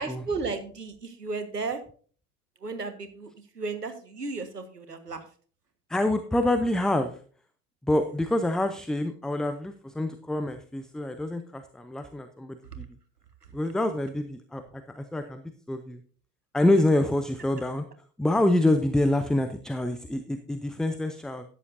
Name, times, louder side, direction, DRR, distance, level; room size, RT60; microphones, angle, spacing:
voice 1, 0.0-1.8 2.6-5.2, right 4 dB, 85° right, 9 dB, 1.6 m, -34 dB
voice 2, 5.9-7.1 7.8-12.8 13.5-14.6 14.9-16.0 16.5-17.8 18.2-21.4, left 1 dB, ahead, 8 dB, 0.4 m, -26 dB
13.5 x 9.9 x 2.6 m, 0.42 s
figure-of-eight pair, 80°, 46 cm